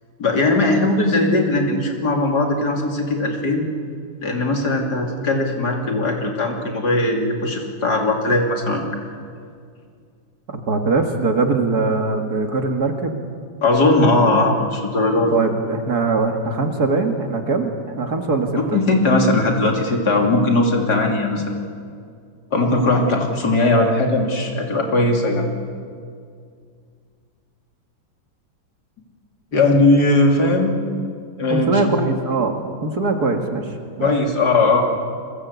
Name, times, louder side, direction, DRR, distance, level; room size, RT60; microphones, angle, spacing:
voice 1, 0.2-3.6 4.2-9.0 13.6-15.3 18.6-21.6 22.5-25.4 29.5-30.8 31.4-31.9 34.0-34.8, left 2 dB, 65° left, 2 dB, 3.5 m, -19 dB
voice 2, 10.5-13.2 15.3-18.8 31.5-34.1, right 3 dB, 60° right, 4 dB, 2.5 m, -22 dB
29.5 x 22.0 x 8.3 m, 2.3 s
omnidirectional pair, 1.9 m